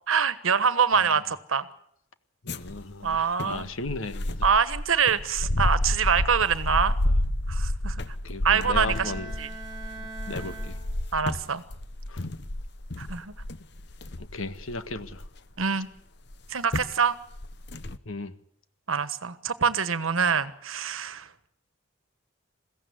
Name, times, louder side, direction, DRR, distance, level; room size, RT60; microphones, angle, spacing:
voice 1, 0.1-1.7 3.0-3.7 4.4-6.9 7.5-8.2 8.4-9.1 9.4-9.5 11.1-11.6 13.0-13.3 15.6-15.9 16.5-17.1 18.9-21.3, right 6 dB, 90° right, 14 dB, 1.3 m, -25 dB
voice 2, 2.5-4.5 7.0-7.1 8.2-9.3 10.0-10.8 12.1-12.3 14.2-15.2 18.0-18.3, left 3 dB, 90° left, 11 dB, 1.5 m, -36 dB
sound 1, 2.5-15.6 16.3-16.4 16.7-17.0 17.3-18.0, left 1 dB, 55° left, 1.0 m, -30 dB
Bowed string instrument, 8.5-11.3, right 3 dB, 15° right, 6.3 m, -42 dB
22.0 x 16.0 x 9.6 m, 0.69 s
head